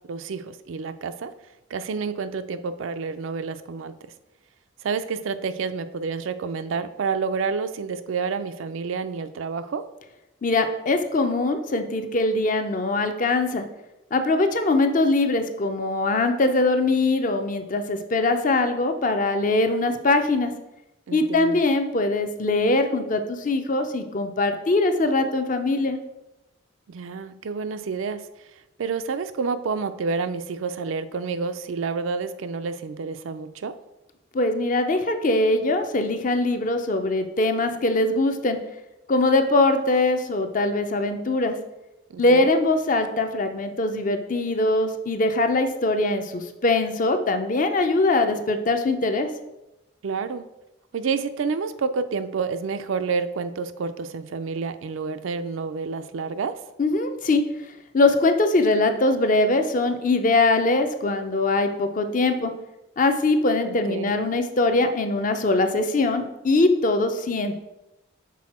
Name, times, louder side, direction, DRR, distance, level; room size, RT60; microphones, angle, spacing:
voice 1, 0.1-1.3 1.7-3.9 4.8-9.9 21.1-21.6 26.9-28.2 28.8-33.7 42.1-42.5 50.0-50.5 50.9-56.6 63.6-64.2, right 5 dB, 75° right, 11 dB, 0.4 m, -29 dB
voice 2, 10.4-13.6 14.1-20.5 21.1-26.0 34.3-38.6 39.1-41.6 42.2-49.3 56.8-57.4 57.9-62.5 63.0-67.6, left 2 dB, 40° left, 7 dB, 0.5 m, -22 dB
6.2 x 4.1 x 4.2 m, 0.94 s
head